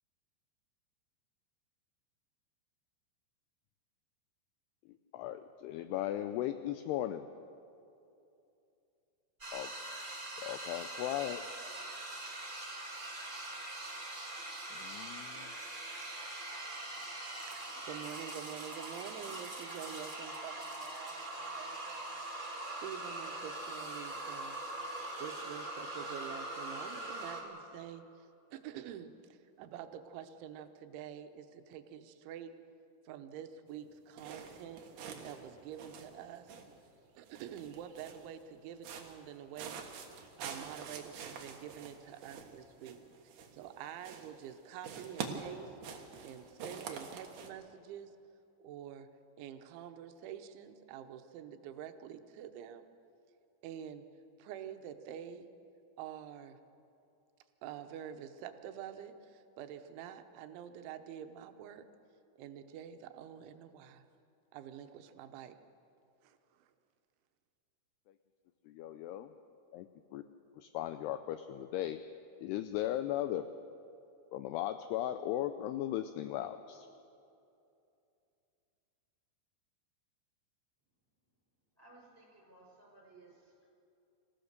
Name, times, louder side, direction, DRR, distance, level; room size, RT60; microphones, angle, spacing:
voice 1, 5.1-7.3 9.5-9.7 10.4-11.4 14.7-15.5 68.7-69.3 69.7-70.3 70.6-72.0 72.4-73.5 74.3-76.9, left 12 dB, 85° left, 10 dB, 2.3 m, -37 dB
sound 1, 9.4-27.4, right 2 dB, 35° right, 0.7 m, -42 dB
voice 2, 17.4-22.2 22.8-24.6 25.2-32.5 33.0-34.8 35.2-36.5 37.2-40.1 40.4-43.0 43.2-48.1 48.6-49.1 49.4-52.9 53.6-54.1 54.4-55.5 56.0-56.6 57.6-61.9 62.4-64.1 64.5-65.6 66.2-66.7, right 9 dB, 85° right, 8 dB, 3.3 m, -47 dB
sound 2, 34.2-35.5 35.7-36.9 37.3-38.3 38.8-39.3 39.6-43.7 44.0-44.5 44.8-47.5, right 6 dB, 60° right, 2.3 m, -46 dB
voice 3, 81.7-83.7, right 2 dB, 5° right, -3 dB, 5.7 m, -59 dB
26.5 x 15.5 x 6.6 m, 2.7 s
omnidirectional pair, 5.3 m